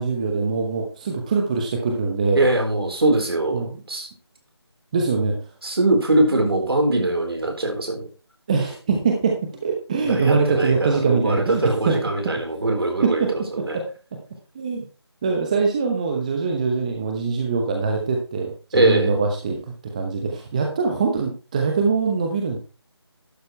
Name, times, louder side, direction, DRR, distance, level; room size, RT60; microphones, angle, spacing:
voice 1, 0.0-2.4 3.5-3.8 4.9-5.4 8.5-12.3 13.0-13.8 14.5-14.9 15.2-22.6, right 4 dB, 15° right, 2 dB, 0.9 m, -23 dB
voice 2, 2.3-4.1 5.6-8.0 10.0-13.8 18.7-19.1, right 2 dB, 60° right, 3 dB, 4.3 m, -22 dB
12.0 x 9.3 x 3.3 m, 0.34 s
figure-of-eight pair, 165°, 14 cm